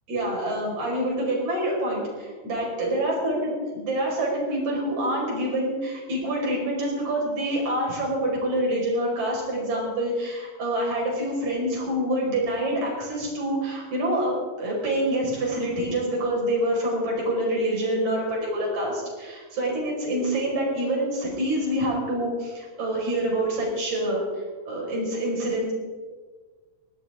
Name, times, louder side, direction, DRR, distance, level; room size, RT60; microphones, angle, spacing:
voice 1, 0.1-14.3 14.6-24.2 24.7-25.7, right 1 dB, 50° right, -3 dB, 6.2 m, -26 dB
20.5 x 16.5 x 3.7 m, 1.5 s
omnidirectional pair, 4.4 m